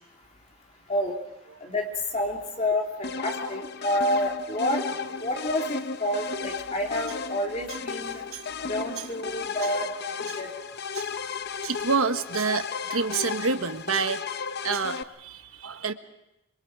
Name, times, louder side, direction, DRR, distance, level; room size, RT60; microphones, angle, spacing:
voice 1, 2.1-4.8 5.2-8.2 8.6-9.9 10.3-10.5, left 1 dB, 30° left, 0 dB, 3.0 m, -28 dB
sound 1, 3.0-15.0, left 5 dB, 50° left, 0.7 m, -34 dB
voice 2, 11.6-14.2 14.6-15.9, right 5 dB, 85° right, 9 dB, 1.2 m, -28 dB
26.5 x 23.5 x 4.8 m, 0.90 s
head